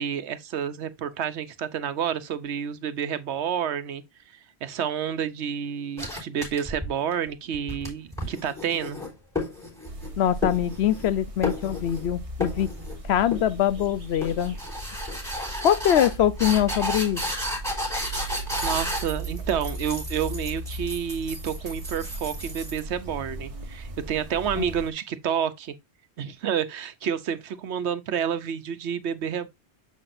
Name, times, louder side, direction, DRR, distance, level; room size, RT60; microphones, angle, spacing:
voice 1, 0.0-4.0 4.6-9.0 18.6-25.7 26.2-29.5, right 8 dB, 80° right, 1.0 m, -29 dB
sound 1, 6.0-7.1 7.5-10.1 10.4-11.1 11.4-12.1 12.4-13.0 13.3-13.8 14.2-22.8, left 1 dB, 5° left, 3.8 m, -32 dB
sound 2, 9.8-24.9, right 2 dB, 30° right, 1.1 m, -37 dB
voice 2, 10.2-12.7 13.0-14.6 15.6-17.2 24.6-24.7, left 10 dB, 75° left, 0.9 m, -23 dB
7.2 x 5.8 x 2.6 m
omnidirectional pair, 1.1 m